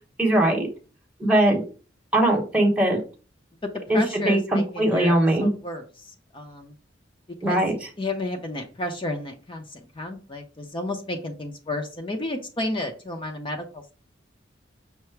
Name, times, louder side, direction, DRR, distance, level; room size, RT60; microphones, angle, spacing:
voice 1, 0.2-0.7 1.2-1.6 2.1-3.0 3.9-5.5 7.4-7.7, right 1 dB, 5° right, -1 dB, 0.9 m, -20 dB
voice 2, 3.6-6.7 7.4-7.6 8.0-13.9, left 1 dB, 30° left, 4 dB, 0.6 m, -32 dB
5.7 x 2.0 x 4.5 m, 0.35 s
head